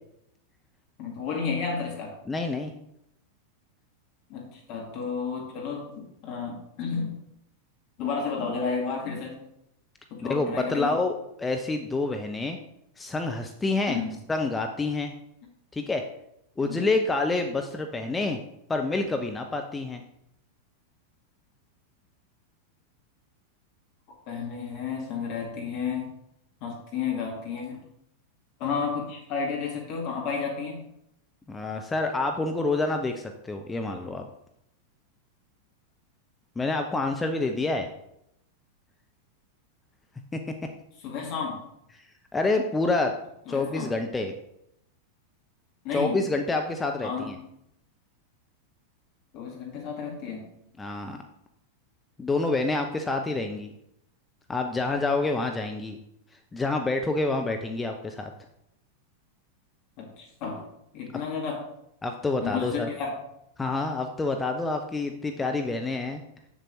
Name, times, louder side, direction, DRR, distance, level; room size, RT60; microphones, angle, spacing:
voice 1, 1.0-2.1 4.3-7.2 8.0-9.4 10.1-10.9 13.9-14.2 16.7-16.9 24.3-26.1 26.6-27.8 28.6-30.9 41.0-41.6 43.5-43.9 45.8-46.2 47.0-47.3 49.3-50.5 60.0-60.6 60.9-61.6 62.4-63.1, left 5 dB, 45° left, 0 dB, 1.7 m, -32 dB
voice 2, 2.3-2.7 10.2-12.6 13.0-14.0 14.3-15.1 15.7-16.0 16.6-18.4 18.7-20.0 31.5-34.2 36.6-37.9 40.3-40.4 42.3-43.2 43.5-44.3 45.9-47.4 50.8-51.2 52.2-53.7 54.5-56.0 56.5-58.3 62.0-62.9 63.6-66.2, left 3 dB, 10° left, 4 dB, 0.6 m, -27 dB
7.3 x 6.8 x 3.0 m, 0.79 s
figure-of-eight pair, 90°, 0 cm